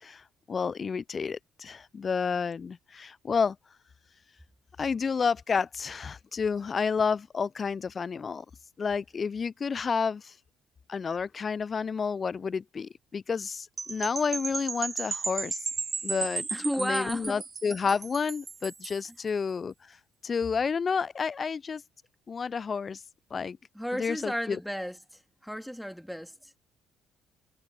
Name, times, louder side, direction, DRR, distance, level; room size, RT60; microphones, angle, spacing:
voice 1, 0.0-3.6 4.8-8.4 8.8-10.3 10.9-15.6 16.0-16.5 16.8-20.0 20.2-21.8 22.3-23.0 23.3-23.6 23.9-24.6, left 5 dB, 40° left, 0.5 m, -30 dB
sound 1, 13.8-19.1, right 4 dB, 35° right, 1.4 m, -35 dB
voice 2, 16.5-17.4 23.7-25.0 25.4-26.6, equal, ahead, 2.7 m, -33 dB
hypercardioid pair, 55°, 0 cm